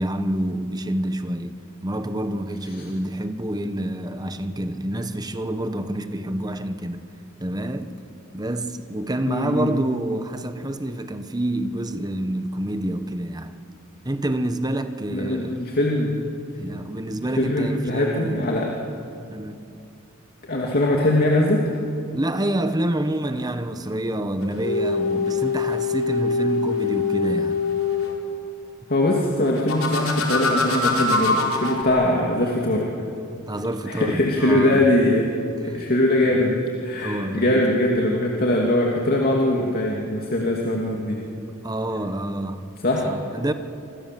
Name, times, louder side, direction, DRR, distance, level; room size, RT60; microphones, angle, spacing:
voice 1, 0.0-7.1 7.4-7.9 8.3-13.6 14.0-15.7 16.6-18.5 19.3-19.6 22.1-27.6 32.4-32.5 33.5-34.9 35.6-35.8 36.2-36.4 36.9-37.7 41.6-42.6 43.0-43.5, right 1 dB, 20° right, 1.3 m, -28 dB
voice 2, 9.3-9.9 15.1-16.1 17.4-18.7 20.5-21.6 28.9-32.9 33.9-35.3 35.6-41.2 42.8-43.0, left 1 dB, 45° left, 2.7 m, -21 dB
sound 1, 24.4-28.2 29.6-31.8, left 3 dB, 80° left, 4.6 m, -24 dB
27.5 x 25.5 x 7.8 m
head